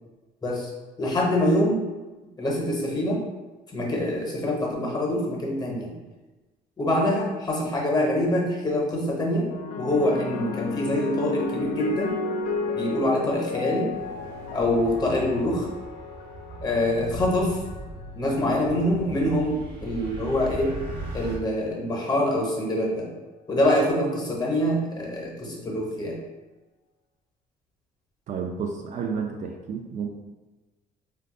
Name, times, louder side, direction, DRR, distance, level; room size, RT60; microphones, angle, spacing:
voice 1, 1.0-1.8 2.4-3.2 3.7-5.9 6.8-9.5 9.8-12.2 12.8-13.9 14.5-15.7 16.6-17.6 18.1-20.7 21.1-23.1 23.5-26.2, left 1 dB, 25° left, -1 dB, 0.8 m, -25 dB
sound 1, 9.5-18.1 19.0-19.4, left 4 dB, 60° left, 0.5 m, -33 dB
sound 2, 13.9-21.4, right 2 dB, 85° right, 0.8 m, -38 dB
voice 2, 28.3-30.1, right 6 dB, 45° right, 3 dB, 0.4 m, -31 dB
2.6 x 2.3 x 3.6 m, 1.2 s
cardioid pair, 110°, 17 cm